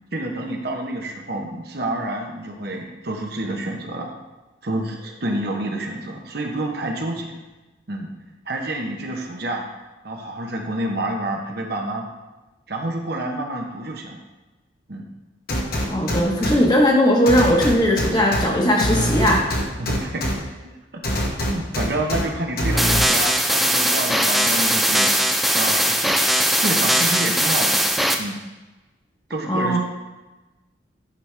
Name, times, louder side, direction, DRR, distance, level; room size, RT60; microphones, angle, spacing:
voice 1, 0.1-4.1 4.6-7.3 7.9-8.1 8.5-9.6 10.0-12.0 12.7-14.2 14.9-15.1 19.8-20.3 20.9-21.0 21.4-25.1 25.5-26.2 26.6-27.8 28.2-28.4 29.3-29.8, right 1 dB, 55° right, 1 dB, 0.9 m, -28 dB
sound 1, 15.5-16.6 17.3-18.4 18.8-20.3 21.0-22.2 22.6-23.0, equal, 50° left, 1.1 m, -23 dB
voice 2, 15.9-19.4 29.5-29.8, equal, 20° left, -2 dB, 1.2 m, -18 dB
sound 2, 22.8-28.1, equal, ahead, 0.4 m, -19 dB
9.9 x 5.3 x 3.4 m, 1.1 s
head